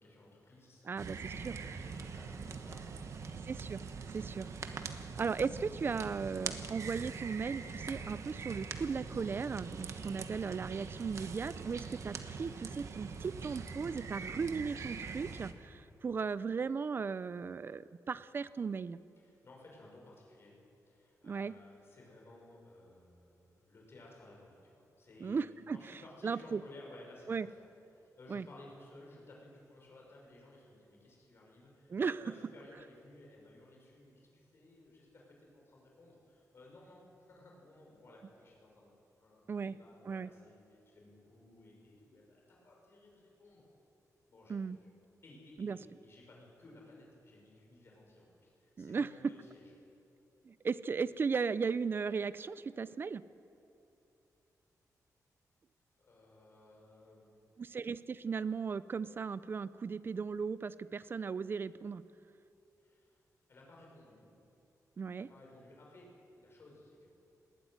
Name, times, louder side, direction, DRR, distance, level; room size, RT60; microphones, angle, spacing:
voice 1, 0.0-3.4 19.2-20.5 20.9-25.4 25.7-27.6 27.9-38.9 39.2-43.6 44.3-44.9 45.2-49.7 56.0-57.7 62.8-63.2 63.5-64.3 65.1-67.1, left 2 dB, 40° left, -2 dB, 6.3 m, -57 dB
voice 2, 0.8-1.6 3.5-3.8 4.1-4.5 5.0-19.0 21.2-21.5 25.2-25.8 26.2-26.6 27.3-27.5 28.3-28.5 31.9-32.2 39.5-39.7 40.1-40.3 44.5-44.8 45.6-45.8 48.8-49.3 50.4-53.2 57.6-62.0 65.0-65.3, right 5 dB, 35° right, 16 dB, 0.5 m, -36 dB
sound 1, 1.0-15.5, right 5 dB, 50° right, 1.2 m, -43 dB
sound 2, 7.7-15.6, left 2 dB, 25° left, 2.9 m, -65 dB
20.5 x 16.0 x 9.4 m, 2.7 s
wide cardioid pair, 155°, 6 cm